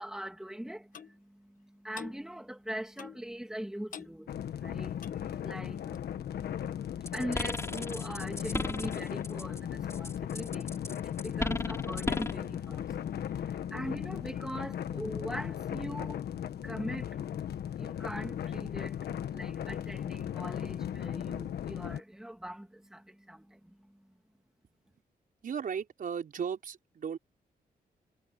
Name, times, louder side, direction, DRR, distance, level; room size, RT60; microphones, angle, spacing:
voice 1, 0.0-24.1, right 1 dB, 5° right, 2.8 m, -42 dB
Clock, 0.9-1.1 1.9-2.2 3.0-3.3 3.9-4.2 4.9-5.2 5.9-6.0, left 7 dB, 55° left, 1.3 m, -45 dB
sound 1, 4.3-22.0, left 9 dB, 90° left, 1.4 m, -37 dB
sound 2, 7.1-9.6 9.9-12.5, left 2 dB, 15° left, 3.0 m, -35 dB
voice 2, 25.4-27.2, right 7 dB, 60° right, 5.4 m, -36 dB
wide cardioid pair, 125°, 16 cm